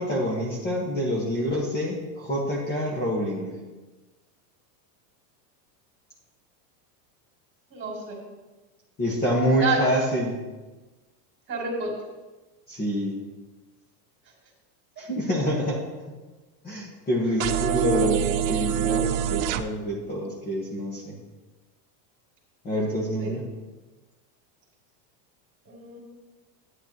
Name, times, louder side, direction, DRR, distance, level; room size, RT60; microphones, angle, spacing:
voice 1, 0.0-3.5 9.0-10.4 12.7-13.1 15.0-15.8 16.6-21.2 22.6-23.4, equal, 20° left, -4 dB, 1.4 m, -27 dB
voice 2, 7.7-8.2 9.6-9.8 11.5-11.9 17.2-17.4 23.2-23.4 25.6-26.0, right 4 dB, 25° right, -2 dB, 2.9 m, -29 dB
sound 1, 17.4-19.6, right 10 dB, 55° right, 0.7 m, -25 dB
11.5 x 9.9 x 3.0 m, 1.2 s
supercardioid pair, 155°, 49 cm